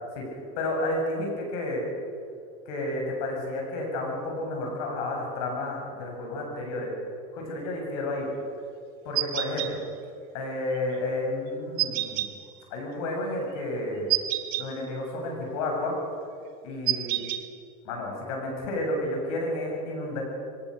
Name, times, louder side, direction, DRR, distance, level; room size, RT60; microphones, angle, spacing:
voice 1, 0.6-1.8 2.7-6.9 7.3-8.3 9.0-9.8 10.3-12.3 12.7-14.1 14.6-15.9 16.6-17.2 17.8-20.2, left 2 dB, 75° left, 1 dB, 7.6 m, -31 dB
sound 1, 9.2-9.7 11.8-12.3 14.1-14.7 16.9-17.4, right 16 dB, 60° right, 1.6 m, -27 dB
23.0 x 19.0 x 6.6 m, 2.3 s
supercardioid pair, 115°, 17 cm